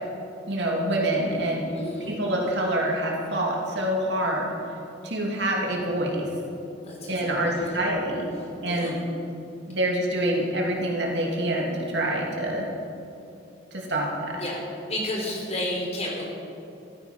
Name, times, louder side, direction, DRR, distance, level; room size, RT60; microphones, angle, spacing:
voice 1, 0.5-1.7 2.1-4.5 5.0-6.3 7.1-8.3 8.6-9.0 9.7-12.7 13.7-14.4, right 1 dB, 65° right, -1 dB, 2.5 m, -26 dB
voice 2, 1.7-2.1 6.8-7.8 8.7-8.9 14.4-14.5 14.9-16.2, left 1 dB, 35° left, -2 dB, 3.8 m, -32 dB
14.0 x 14.0 x 5.5 m, 2.6 s
head